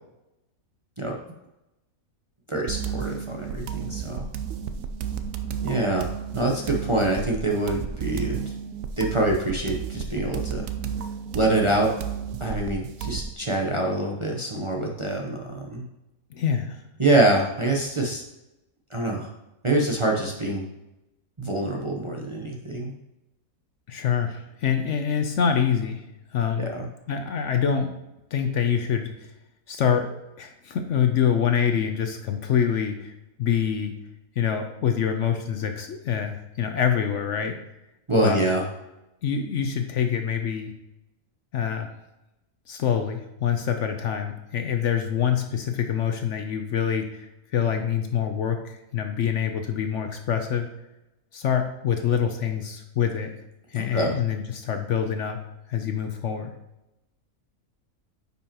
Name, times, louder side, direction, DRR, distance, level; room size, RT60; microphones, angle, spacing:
voice 1, 2.5-4.3 5.6-6.1 6.3-8.5 9.0-10.7 11.3-11.9 12.4-15.8 17.0-18.2 18.9-19.3 19.6-20.6 21.4-22.9 26.6-26.9 38.1-38.6 53.7-54.1, right 2 dB, 25° right, -1 dB, 0.7 m, -25 dB
sound 1, 2.7-13.3, right 8 dB, 70° right, 0.9 m, -32 dB
voice 2, 16.3-16.9 23.9-26.0 26.3-26.7 27.1-27.9 28.3-29.3 29.7-33.1 33.4-33.9 34.4-37.6 38.2-38.4 39.2-40.7 41.5-41.9 42.7-50.7 51.3-53.3 53.7-55.4 55.7-56.5, left 8 dB, 65° left, 6 dB, 0.9 m, -25 dB
9.3 x 5.5 x 2.9 m, 0.95 s
omnidirectional pair, 1.5 m